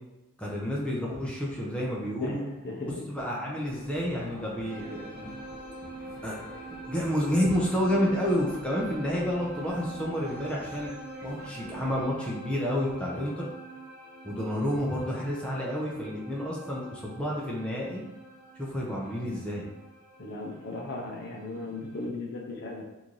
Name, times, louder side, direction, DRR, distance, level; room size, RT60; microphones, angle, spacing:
voice 1, 0.4-2.4 3.1-5.3 6.2-6.4 6.9-10.9 11.2-13.5 14.2-18.0 18.6-19.6, equal, 5° left, -4 dB, 0.5 m, -30 dB
voice 2, 2.2-3.0 20.2-22.9, left 2 dB, 50° left, 1 dB, 0.6 m, -36 dB
sound 1, 3.6-12.0, right 1 dB, 40° right, 0.9 m, -48 dB
sound 2, 4.6-22.1, right 2 dB, 10° right, 0.9 m, -45 dB
3.0 x 2.6 x 3.7 m, 0.99 s
head